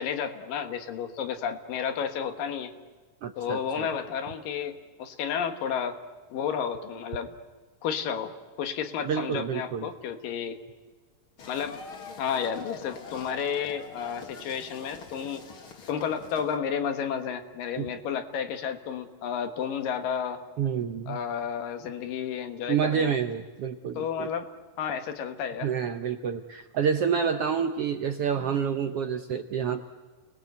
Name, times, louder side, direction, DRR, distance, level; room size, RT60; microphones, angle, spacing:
voice 1, 0.0-2.7 3.4-6.0 6.3-7.3 7.8-10.6 11.5-11.8 12.2-15.4 15.9-20.4 21.1-23.2 24.0-24.5 24.8-25.7, left 7 dB, 90° left, 8 dB, 3.2 m, -31 dB
voice 2, 3.2-3.9 9.0-9.9 17.8-17.9 20.6-21.2 22.7-24.3 25.6-29.8, right 7 dB, 70° right, 7 dB, 1.4 m, -28 dB
sound 1, 11.4-16.6, left 4 dB, 45° left, 2.5 m, -44 dB
29.0 x 20.0 x 8.1 m, 1.4 s
omnidirectional pair, 3.8 m